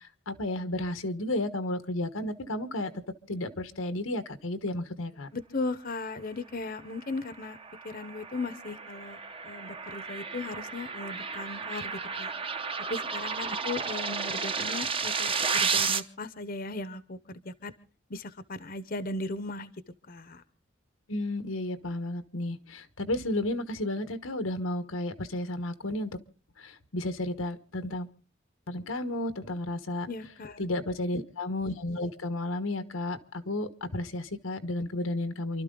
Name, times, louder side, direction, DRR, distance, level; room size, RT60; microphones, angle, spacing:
voice 1, 0.3-2.9 3.3-5.3 21.1-26.2 26.6-28.1 28.7-30.1 30.6-35.6, left 1 dB, 90° left, 10 dB, 1.3 m, -32 dB
voice 2, 5.3-7.6 7.8-9.2 9.4-12.3 12.9-17.7 18.1-19.7 20.1-20.4 30.1-30.7, left 3 dB, 45° left, 13 dB, 0.9 m, -37 dB
sound 1, 7.1-16.0, right 5 dB, 25° right, 0.8 m, -32 dB
28.0 x 12.5 x 3.8 m, 0.38 s
head